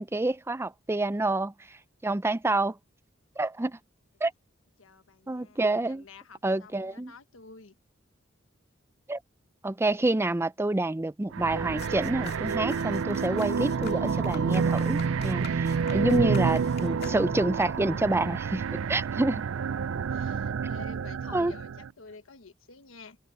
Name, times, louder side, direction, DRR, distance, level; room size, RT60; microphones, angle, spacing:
voice 1, 0.0-1.8 2.0-2.8 3.4-3.8 4.2-4.3 5.3-6.0 6.4-7.1 9.1-9.2 9.6-19.4 21.3-21.5, right 2 dB, 15° right, 0.5 m, -28 dB
voice 2, 4.8-7.8 20.1-23.2, left 4 dB, 90° left, 1.3 m, -50 dB
sound 1, 11.3-21.9, right 6 dB, 80° right, 0.4 m, -29 dB
sound 2, 11.8-17.6, left 4 dB, 55° left, 2.2 m, -45 dB
head